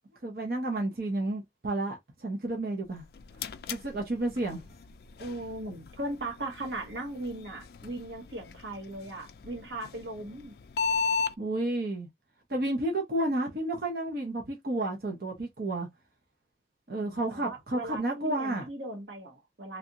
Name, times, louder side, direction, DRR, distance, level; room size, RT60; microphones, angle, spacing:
voice 1, 0.2-3.0 3.7-4.6 11.4-12.1 12.5-15.9 16.9-18.7, right 2 dB, 55° right, 0.8 m, -31 dB
sound 1, 2.9-11.3, left 5 dB, 60° left, 0.3 m, -37 dB
voice 2, 5.2-10.5 17.0-19.8, right 2 dB, 85° right, 1.1 m, -38 dB
3.3 x 2.5 x 2.8 m
head